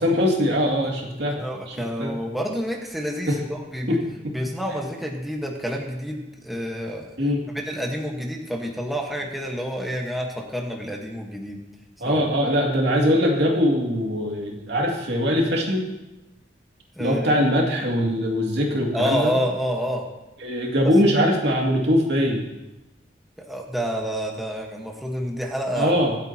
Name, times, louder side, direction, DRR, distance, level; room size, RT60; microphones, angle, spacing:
voice 1, 0.0-2.2 3.3-3.4 3.9-4.3 7.2-7.5 12.0-15.9 17.0-19.3 20.4-22.4 25.7-26.2, equal, 75° right, -1 dB, 2.6 m, -22 dB
voice 2, 1.4-4.0 4.3-7.2 7.5-11.6 12.0-12.2 16.9-17.4 18.9-20.1 23.4-26.0, equal, ahead, -1 dB, 1.4 m, -28 dB
24.5 x 8.5 x 2.9 m, 0.98 s
head